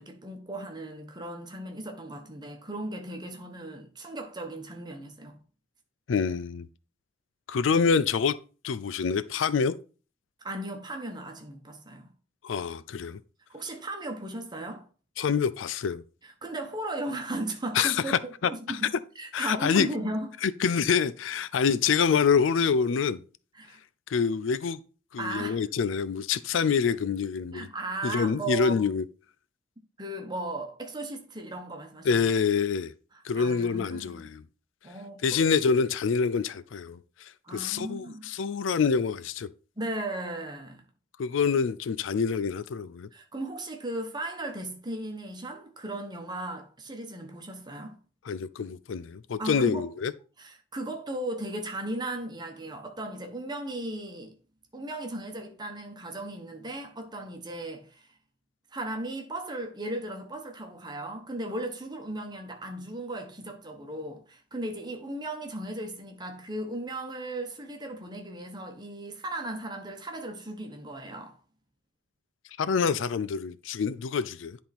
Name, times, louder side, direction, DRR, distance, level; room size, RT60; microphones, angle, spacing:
voice 1, 0.0-5.4 10.4-12.1 13.5-14.9 16.2-18.2 18.4-18.9 19.2-20.3 23.5-23.8 25.2-25.6 27.5-28.8 30.0-32.2 33.4-34.2 34.8-35.4 37.4-38.3 39.8-40.8 43.1-48.0 49.4-49.8 50.4-54.3 54.7-58.1 58.7-71.3, right 1 dB, 20° right, 1.2 m, -36 dB
voice 2, 6.1-6.7 7.5-8.4 8.6-9.8 12.4-13.2 15.2-16.0 17.7-18.2 18.7-18.8 19.3-19.9 20.4-23.2 24.1-24.8 25.1-27.7 28.0-29.0 32.0-32.9 33.2-34.4 35.2-39.5 41.2-43.1 48.3-50.1 72.6-74.6, left 6 dB, 80° left, 0.4 m, -26 dB
10.5 x 3.7 x 4.2 m
head